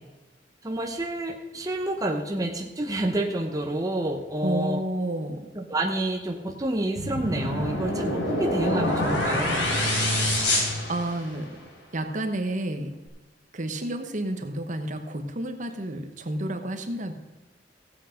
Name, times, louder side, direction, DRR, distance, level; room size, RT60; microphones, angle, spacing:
voice 1, 0.6-4.8 5.5-9.7, right 1 dB, 20° right, 2 dB, 0.9 m, -29 dB
voice 2, 4.4-5.5 10.1-10.5 10.9-11.6 11.9-12.9 13.5-17.1, right 1 dB, 45° right, 7 dB, 1.1 m, -30 dB
sound 1, 7.0-11.6, left 1 dB, 85° left, 4.3 m, -26 dB
15.0 x 8.5 x 5.0 m, 1.2 s
head